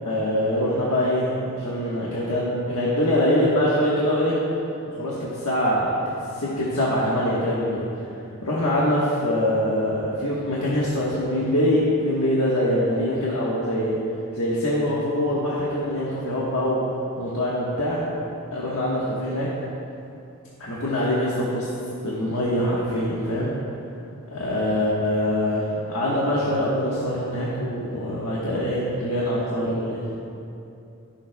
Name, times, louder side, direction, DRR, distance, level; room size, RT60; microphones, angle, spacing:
voice 1, 0.0-4.4 4.9-6.0 6.3-7.8 8.4-14.0 14.3-16.8 17.2-18.1 18.5-19.5 20.6-21.7 22.0-23.5 24.3-30.0, left 1 dB, 70° left, -7 dB, 1.4 m, -24 dB
19.5 x 7.4 x 2.3 m, 2.7 s
head